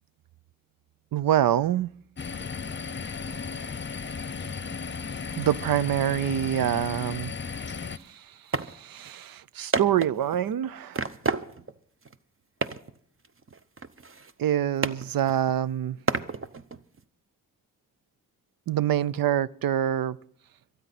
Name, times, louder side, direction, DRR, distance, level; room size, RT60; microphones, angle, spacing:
voice 1, 1.1-1.9 5.4-7.3 8.1-8.2 8.6-11.1 14.4-16.0 18.7-20.2, right 11 dB, 90° right, 0.5 m, -26 dB
sound 1, 2.2-8.0, left 5 dB, 35° left, 0.7 m, -35 dB
sound 2, 7.5-7.6 8.0-8.1 8.5-8.7 9.1-9.2 9.7-10.5 10.9-11.8 12.0-12.2 12.6-13.0 13.2-14.5 14.8-15.6 16.1-17.0, right 4 dB, 40° right, 0.8 m, -31 dB
25.5 x 9.3 x 4.2 m
cardioid pair, 70°, 34 cm